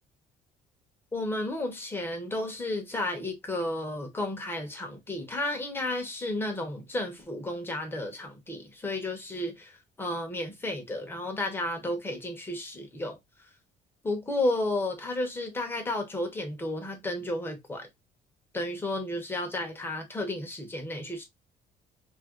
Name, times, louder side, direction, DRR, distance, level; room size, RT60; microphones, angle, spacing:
voice 1, 1.1-13.2 14.0-17.9 18.5-21.3, left 1 dB, 15° left, 0.8 m, -32 dB
2.9 x 2.5 x 2.8 m
cardioid pair, 150°, 17 cm